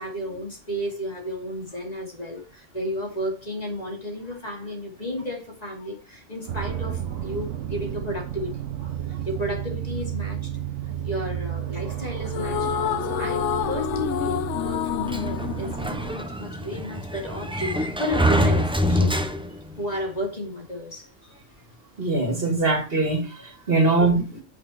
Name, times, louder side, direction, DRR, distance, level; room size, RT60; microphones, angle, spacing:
voice 1, 0.0-10.5 10.8-12.7 13.0-19.2 19.8-21.4, equal, 30° left, 2.8 m, -33 dB
sound 1, 6.5-16.2, right 10 dB, 70° right, 1.2 m, -32 dB
sound 2, 12.3-16.7, left 11 dB, 70° left, 0.9 m, -28 dB
Sliding door, 15.1-19.8, equal, 5° right, 0.8 m, -25 dB
voice 2, 22.0-24.4, right 3 dB, 45° right, 2.5 m, -22 dB
8.3 x 6.5 x 4.3 m
omnidirectional pair, 1.3 m